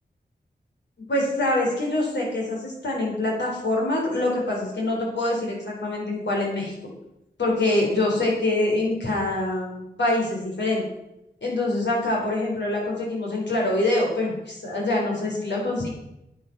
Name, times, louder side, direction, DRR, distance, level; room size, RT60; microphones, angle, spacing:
voice 1, 1.1-6.7 7.4-10.8 11.4-15.9, left 2 dB, 80° left, -2 dB, 3.9 m, -25 dB
9.2 x 8.7 x 6.0 m, 0.88 s
cardioid pair, 55°, 18 cm